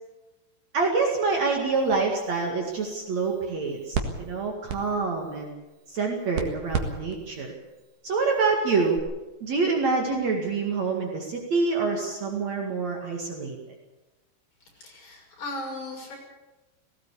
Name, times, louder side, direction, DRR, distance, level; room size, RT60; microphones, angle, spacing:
voice 1, 0.7-5.5 5.9-7.5 8.0-9.0 9.4-13.6, right 4 dB, 55° right, 1 dB, 3.2 m, -26 dB
sound 1, 1.4-9.0, right 5 dB, 70° right, 3.2 m, -37 dB
voice 2, 14.7-16.2, left 2 dB, 55° left, -2 dB, 7.8 m, -37 dB
18.0 x 18.0 x 8.4 m, 1.1 s
omnidirectional pair, 4.0 m